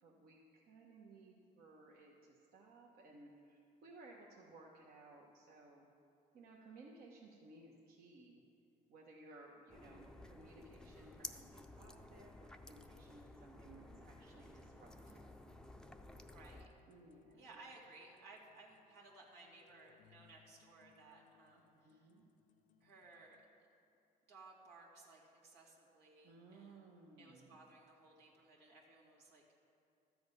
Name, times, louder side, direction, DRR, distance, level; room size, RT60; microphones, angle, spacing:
voice 1, 0.0-5.9 6.3-8.4 8.9-15.3 16.9-17.5 21.7-22.2 26.2-27.7, right 2 dB, 65° right, -2 dB, 1.2 m, -60 dB
sound 1, 9.7-16.7, left 1 dB, 5° left, 0.5 m, -54 dB
sound 2, 11.8-23.5, left 8 dB, 50° left, 0.5 m, -72 dB
voice 2, 16.3-16.7 17.4-22.1 22.8-23.4 24.3-26.9 27.2-29.4, right 3 dB, 85° right, -4 dB, 2.5 m, -60 dB
13.0 x 7.8 x 5.3 m, 2.6 s
cardioid pair, 110°, 17 cm